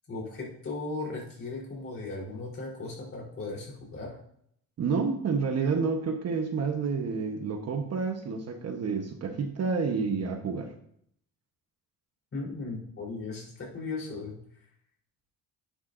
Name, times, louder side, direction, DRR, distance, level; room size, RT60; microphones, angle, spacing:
voice 1, 0.1-4.1 12.3-14.3, left 3 dB, 35° left, -3 dB, 3.7 m, -37 dB
voice 2, 4.8-10.7, right 5 dB, 45° right, 5 dB, 1.0 m, -29 dB
10.5 x 10.0 x 2.6 m, 0.68 s
cardioid pair, 145°, 35 cm